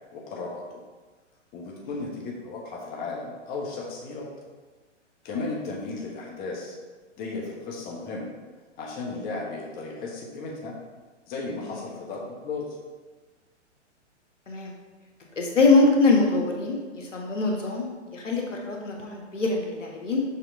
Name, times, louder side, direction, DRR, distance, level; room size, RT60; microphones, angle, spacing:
voice 1, 0.1-0.6 1.5-4.3 5.2-6.7 7.2-8.3 8.8-10.7 11.3-12.7, left 3 dB, 25° left, -2 dB, 1.2 m, -35 dB
voice 2, 15.4-20.2, left 3 dB, 80° left, 0 dB, 1.5 m, -23 dB
6.7 x 3.5 x 4.7 m, 1.3 s
hypercardioid pair, 125°, 36 cm